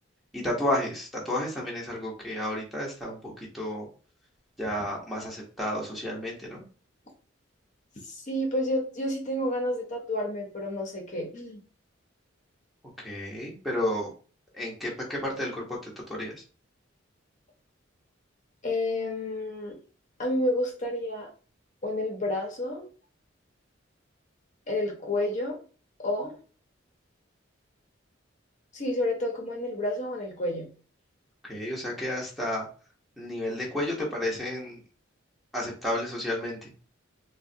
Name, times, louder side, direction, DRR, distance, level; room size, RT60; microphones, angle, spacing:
voice 1, 0.3-3.9 4.6-6.6 13.0-14.1 14.5-16.3 31.4-32.7 33.2-34.8 35.5-36.7, left 1 dB, ahead, -5 dB, 0.7 m, -32 dB
voice 2, 8.0-11.6 18.6-19.7 20.2-21.3 21.8-22.9 24.7-25.6 26.0-26.4 28.7-30.7, left 1 dB, 35° left, 0 dB, 0.6 m, -30 dB
3.5 x 2.1 x 2.6 m, 0.38 s
head